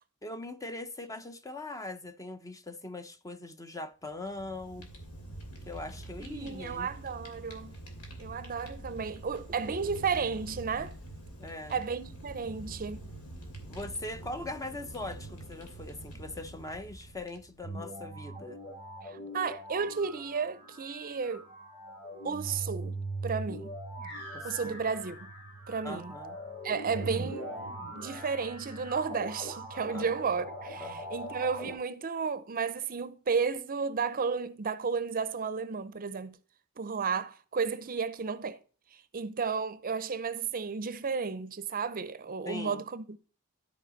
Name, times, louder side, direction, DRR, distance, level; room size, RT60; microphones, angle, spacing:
voice 1, 0.2-4.9 5.7-6.9 11.4-11.7 13.7-18.6 24.3-24.8 25.8-26.4 29.9-30.1 30.8-31.0 42.5-42.8, left 2 dB, 15° left, 0.6 m, -41 dB
Fire, 4.2-17.7, right 1 dB, 75° left, 2.7 m, -46 dB
voice 2, 6.2-7.8 8.2-11.0 11.7-13.0 19.0-21.5 22.2-23.0 23.2-23.7 24.4-25.3 25.7-26.1 26.6-27.5 28.0-36.4 36.8-38.6 38.9-43.2, right 5 dB, 40° right, 0.6 m, -33 dB
sound 1, 17.6-31.7, right 1 dB, 50° left, 5.3 m, -41 dB
12.5 x 4.9 x 4.0 m
head